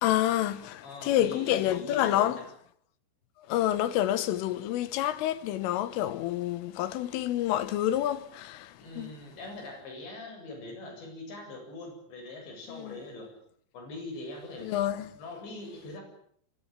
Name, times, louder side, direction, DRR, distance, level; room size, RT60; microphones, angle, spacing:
voice 1, 0.0-2.4 3.5-9.1 12.7-13.0 14.6-15.2, left 12 dB, 85° left, 3.9 m, -28 dB
voice 2, 0.8-2.3 8.8-13.3 13.7-14.8 15.2-16.0, left 2 dB, 60° left, 10.0 m, -42 dB
25.5 x 24.0 x 9.1 m
omnidirectional pair, 5.7 m